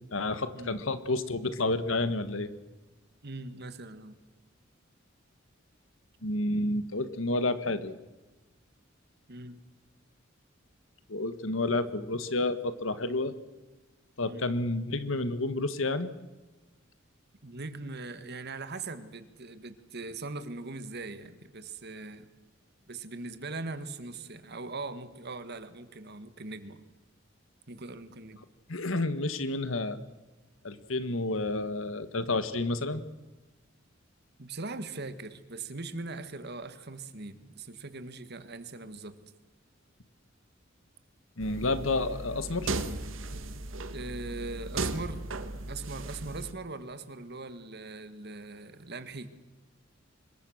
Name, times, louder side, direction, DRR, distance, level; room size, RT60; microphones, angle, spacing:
voice 1, 0.1-2.5 6.2-8.0 11.1-13.3 14.2-16.1 28.7-30.0 30.6-33.0 41.4-42.7, left 2 dB, 90° left, 12 dB, 1.7 m, -30 dB
voice 2, 3.2-4.2 9.3-9.6 14.2-14.5 17.4-22.3 22.9-26.8 27.7-28.4 34.4-39.1 43.9-45.2 45.7-49.3, right 3 dB, 55° right, 11 dB, 1.8 m, -40 dB
sound 1, 41.4-46.5, right 2 dB, 80° right, 1.8 m, -36 dB
25.5 x 22.0 x 6.6 m, 1.2 s
head